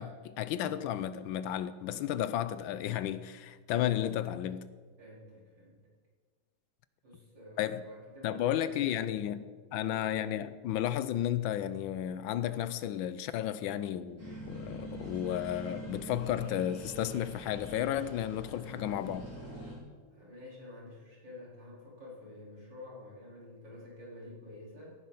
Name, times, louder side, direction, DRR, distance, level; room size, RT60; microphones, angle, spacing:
voice 1, 0.0-4.7 7.6-7.8 8.2-9.5 9.7-19.3, left 11 dB, 80° left, 1.3 m, -33 dB
voice 2, 5.0-5.8 7.0-9.3 20.1-25.0, left 2 dB, 65° right, 4.6 m, -49 dB
sound 1, 14.2-19.8, right 1 dB, 40° right, 4.2 m, -44 dB
16.5 x 11.0 x 4.0 m
omnidirectional pair, 2.2 m